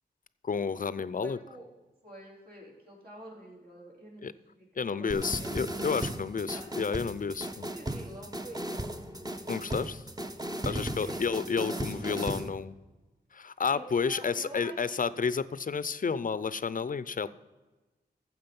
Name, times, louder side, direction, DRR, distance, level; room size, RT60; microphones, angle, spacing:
voice 1, 0.4-1.4 4.2-4.3 4.8-7.7 9.5-10.0 10.6-12.8 13.3-17.3, left 5 dB, 50° left, 17 dB, 0.5 m, -31 dB
voice 2, 1.2-1.6 2.0-5.8 6.5-6.6 7.7-9.0 10.6-11.2 11.6-12.2 13.7-15.1, right 1 dB, 60° right, -4 dB, 4.4 m, -48 dB
sound 1, 5.1-12.5, right 1 dB, 20° right, 0.9 m, -36 dB
14.5 x 7.5 x 5.4 m, 1.2 s
wide cardioid pair, 85°, 17 cm